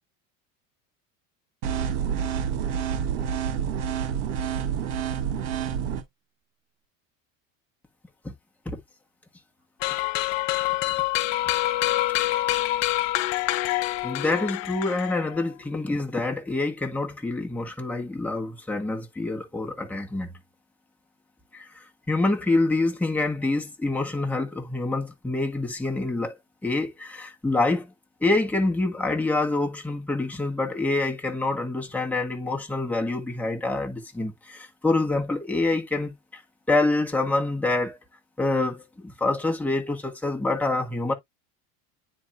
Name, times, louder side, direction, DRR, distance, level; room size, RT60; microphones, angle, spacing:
sound 1, 1.6-6.0, right 8 dB, 90° right, 2.4 m, -28 dB
sound 2, 9.8-15.4, left 16 dB, 70° left, 0.8 m, -26 dB
voice 1, 14.0-20.3 21.5-26.4 26.6-27.9 28.2-36.4 36.7-38.0 38.4-41.1, left 2 dB, 5° left, 1.5 m, -26 dB
9.6 x 4.4 x 2.4 m
cardioid pair, 150°, 39 cm